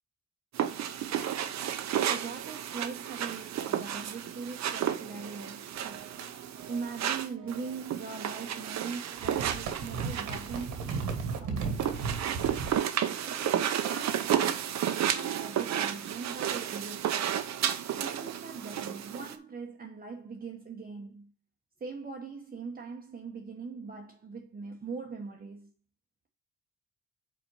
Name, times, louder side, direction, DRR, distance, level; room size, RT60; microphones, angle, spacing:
sound 1, 0.5-19.3, right 10 dB, 65° right, 0.8 m, -32 dB
voice 1, 2.0-6.2 6.7-10.9 11.4-12.0 13.2-17.3 18.0-21.3 21.8-25.7, right 4 dB, 30° right, 1.0 m, -41 dB
sound 2, 5.7-8.4 8.7-12.8, right 5 dB, 85° right, 1.6 m, -37 dB
5.1 x 4.4 x 6.1 m
cardioid pair, 90°, 30 cm